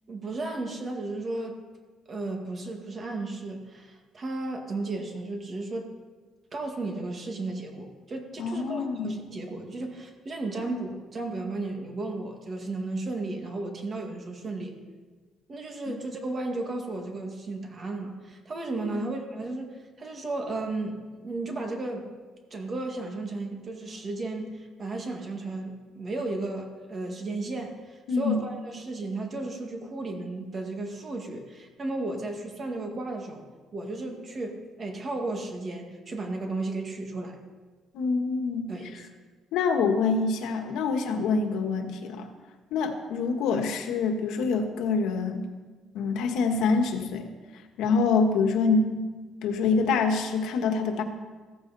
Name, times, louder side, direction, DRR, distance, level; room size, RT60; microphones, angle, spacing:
voice 1, 0.1-1.6 2.1-5.9 6.5-14.8 15.5-22.1 22.5-33.5 33.7-37.4 38.7-39.1, right 2 dB, 30° right, 3 dB, 2.0 m, -34 dB
voice 2, 8.4-9.2 19.0-19.1 28.1-28.4 37.9-38.7 39.5-42.3 42.7-45.5 45.9-47.3 47.8-49.1 49.4-51.0, left 4 dB, 80° left, 5 dB, 1.6 m, -26 dB
15.5 x 15.0 x 4.2 m, 1.4 s
cardioid pair, 155°, 0 cm